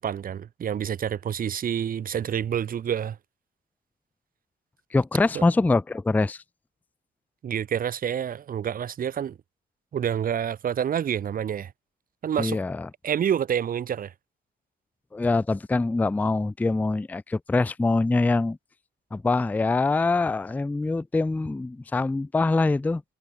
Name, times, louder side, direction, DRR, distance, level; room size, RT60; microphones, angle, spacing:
voice 1, 0.0-3.2 5.3-5.4 7.4-9.4 9.9-11.7 12.2-12.6 13.0-14.1, right 9 dB, 45° right, 0.7 m, -28 dB
voice 2, 4.9-6.4 12.4-12.9 15.1-18.6 19.1-23.0, left 3 dB, 10° left, 0.4 m, -24 dB
cardioid pair, 90°, 20 cm